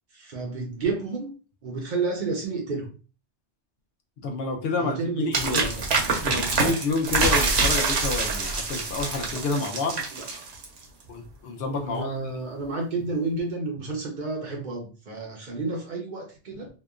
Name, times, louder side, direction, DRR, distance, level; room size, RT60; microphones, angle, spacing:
voice 1, 0.1-1.3 1.6-2.9 4.8-5.9 10.1-10.3 11.9-16.7, right 3 dB, 55° right, 0 dB, 0.6 m, -30 dB
voice 2, 4.2-5.7 6.2-10.0 11.1-12.1, left 3 dB, 65° left, 2 dB, 0.8 m, -29 dB
sound 1, 5.3-10.8, right 4 dB, 70° right, 1.0 m, -25 dB
2.8 x 2.1 x 2.4 m, 0.35 s
omnidirectional pair, 1.2 m